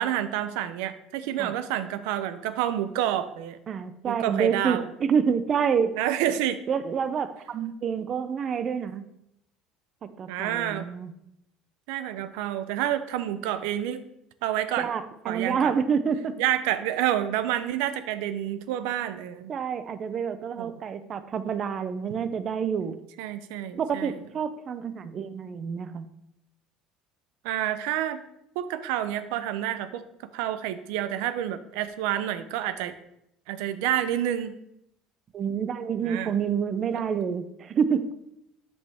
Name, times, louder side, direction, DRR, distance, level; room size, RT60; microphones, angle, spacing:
voice 1, 0.0-3.6 4.1-4.8 6.0-6.6 10.3-10.9 11.9-14.0 14.4-14.9 15.3-15.7 16.4-19.5 20.6-20.8 23.2-24.1 27.4-28.2 28.6-30.0 30.3-32.9 33.5-34.5 36.0-36.3 36.9-37.0, right 11 dB, 90° right, 12 dB, 0.6 m, -28 dB
voice 2, 3.7-6.0 6.7-9.0 10.0-11.1 14.8-16.4 19.5-23.0 23.8-26.1 35.3-38.2, right 7 dB, 30° right, 12 dB, 0.5 m, -28 dB
10.5 x 5.4 x 3.5 m, 0.79 s
cardioid pair, 165°, 0 cm